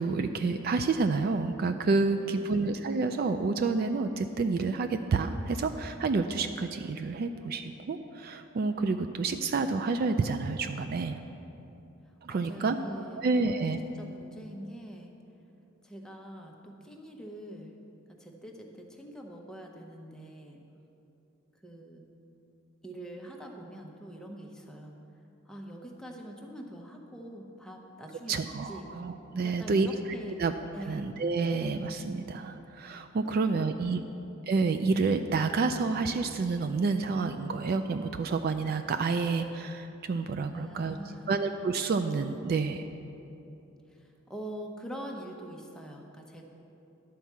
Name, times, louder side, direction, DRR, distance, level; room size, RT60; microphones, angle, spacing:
voice 1, 0.0-11.2 12.2-12.8 13.2-13.8 28.3-29.9 30.4-30.5 30.9-34.0 34.5-41.0 41.3-42.9, right 4 dB, 45° right, 8 dB, 0.3 m, -29 dB
voice 2, 2.1-2.6 12.3-13.5 13.8-15.1 15.8-17.8 18.1-20.6 21.6-22.1 22.8-25.0 25.5-28.9 29.4-30.4 30.7-31.1 33.2-33.6 33.9-34.1 40.5-41.4 43.9-46.5, right 1 dB, 5° left, 0 dB, 0.7 m, -44 dB
11.0 x 4.5 x 7.2 m, 2.9 s
head